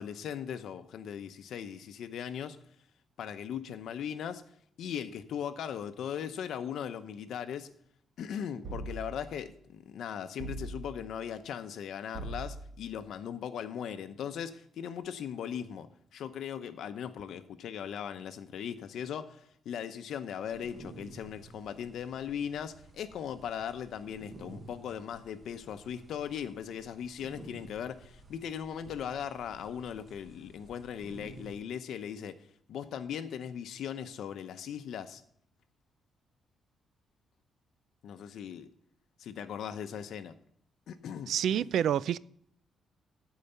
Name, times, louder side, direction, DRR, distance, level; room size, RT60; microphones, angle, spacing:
voice 1, 0.0-2.6 3.2-4.4 4.8-7.7 8.2-15.9 16.1-32.4 32.7-35.2 38.0-38.7 39.2-40.3 40.9-41.3, left 8 dB, 65° left, 0.7 m, -39 dB
sound 1, 8.6-9.4 10.4-11.1 12.1-12.9, right 2 dB, 45° right, 1.2 m, -41 dB
sound 2, 20.5-31.6, right 2 dB, 25° right, 1.2 m, -52 dB
voice 2, 41.3-42.2, right 9 dB, 60° right, 0.3 m, -28 dB
14.0 x 4.8 x 6.8 m
cardioid pair, 180°, 0 cm